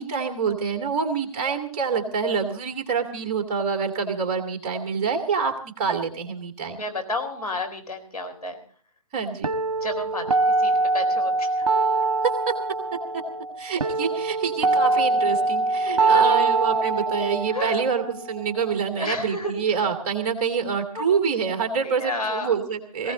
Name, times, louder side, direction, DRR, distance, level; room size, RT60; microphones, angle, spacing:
voice 1, 0.0-6.8 9.1-9.5 13.6-23.1, right 6 dB, 25° right, 5 dB, 2.3 m, -26 dB
voice 2, 6.7-8.6 9.8-11.7 15.8-16.4 17.5-17.8 18.9-19.5 20.1-20.3 20.9-21.1 21.8-22.6 23.0-23.1, left 2 dB, 80° left, 4 dB, 4.2 m, -32 dB
sound 1, 9.4-19.4, right 3 dB, 60° right, 1.3 m, -24 dB
20.0 x 16.5 x 3.9 m, 0.44 s
figure-of-eight pair, 135°, 19 cm